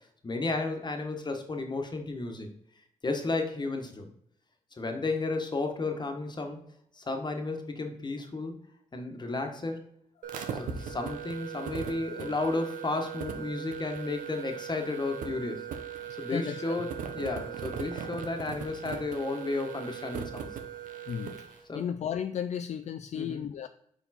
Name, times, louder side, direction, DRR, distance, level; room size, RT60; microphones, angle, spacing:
voice 1, 0.2-2.5 3.0-4.1 4.8-6.6 7.0-8.6 8.9-9.8 10.5-15.7 16.2-20.5 21.7-21.8 23.1-23.4, left 3 dB, 35° left, 4 dB, 1.3 m, -33 dB
sound 1, 10.2-21.6, right 7 dB, 85° right, 0.8 m, -39 dB
voice 2, 16.3-16.8 21.1-21.3 21.7-23.7, left 8 dB, 60° left, 9 dB, 0.4 m, -34 dB
5.3 x 4.5 x 4.2 m, 0.71 s
cardioid pair, 65°, 13 cm